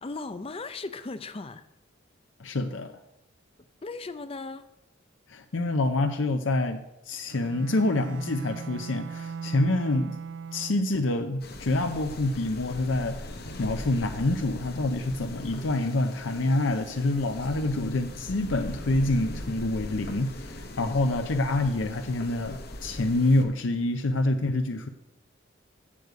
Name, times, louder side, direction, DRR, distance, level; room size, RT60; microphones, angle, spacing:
voice 1, 0.0-1.6 3.8-4.6, left 3 dB, 30° left, 12 dB, 0.5 m, -37 dB
voice 2, 2.4-3.0 5.3-10.2 10.5-13.2 13.6-24.9, left 2 dB, 75° left, 6 dB, 0.7 m, -27 dB
Bowed string instrument, 7.3-11.1, right 5 dB, 65° right, 0.4 m, -39 dB
sound 1, 11.4-23.4, left 1 dB, 55° left, 1.2 m, -40 dB
8.5 x 6.8 x 8.0 m, 0.92 s
head